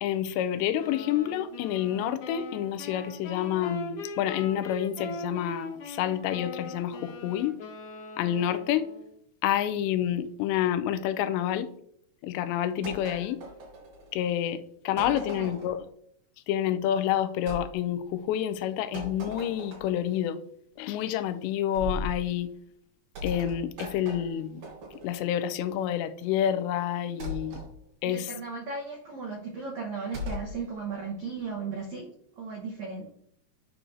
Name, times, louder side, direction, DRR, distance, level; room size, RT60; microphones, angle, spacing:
voice 1, 0.0-7.6 8.2-8.9 9.4-11.7 12.2-13.4 14.1-15.8 16.5-20.4 20.8-22.5 23.2-24.6 25.0-27.6 28.0-28.3, left 11 dB, 90° left, 2.8 m, -28 dB
sound 1, 0.8-9.1, left 2 dB, 65° left, 1.5 m, -41 dB
sound 2, 12.8-14.3 15.0-15.8 17.5-17.7 18.9-20.1 21.8-22.2 23.2-25.3 27.2-27.7 30.1-30.5, left 1 dB, 60° right, 5.4 m, -38 dB
voice 2, 14.9-15.5 28.0-33.1, right 4 dB, 80° right, 1.6 m, -36 dB
10.0 x 6.1 x 2.6 m
omnidirectional pair, 5.0 m